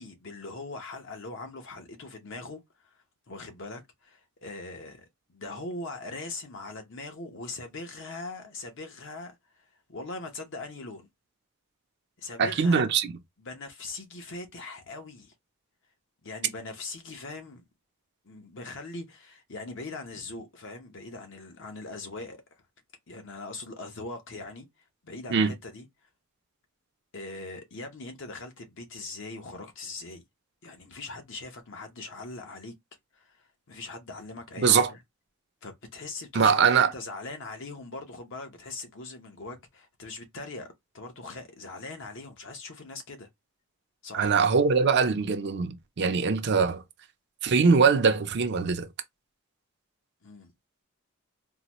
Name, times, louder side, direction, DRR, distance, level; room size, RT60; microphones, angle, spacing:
voice 1, 0.0-3.0 3.3-9.6 9.9-11.1 12.2-12.9 13.4-15.3 16.2-17.6 18.2-22.4 23.1-24.7 25.0-25.9 27.1-30.2 30.6-32.7 33.1-35.0 35.6-43.3 44.0-44.3 50.2-50.5, left 3 dB, 60° left, 0.9 m, -41 dB
voice 2, 12.4-13.1 25.3-25.5 34.6-34.9 36.3-36.9 44.1-46.8 47.4-48.9, right 5 dB, 50° right, 0.5 m, -22 dB
3.9 x 2.1 x 2.9 m
head